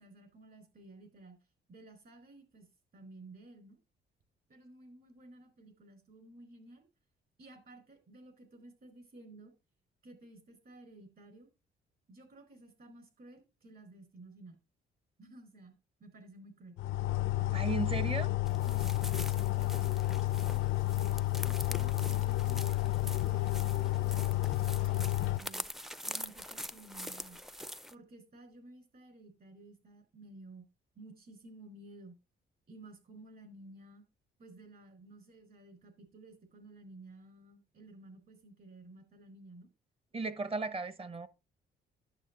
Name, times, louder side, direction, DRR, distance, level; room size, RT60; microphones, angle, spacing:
voice 1, 0.0-1.4 1.7-2.7 2.9-3.8 4.5-6.9 7.4-9.5 10.0-11.5 12.1-14.6 15.2-16.8 17.3-17.8 18.6-20.7 21.4-25.6 26.0-27.4 27.9-30.7 30.9-32.2 32.7-34.0 34.4-39.7, right 2 dB, 50° right, 4.3 m, -54 dB
sound 1, 16.8-25.4, left 15 dB, 80° left, 0.5 m, -31 dB
voice 2, 17.5-18.3 40.1-41.3, right 3 dB, 30° right, 1.0 m, -35 dB
sound 2, 18.5-27.9, equal, ahead, 0.5 m, -45 dB
10.5 x 7.4 x 3.7 m
cardioid pair, 90°, 20 cm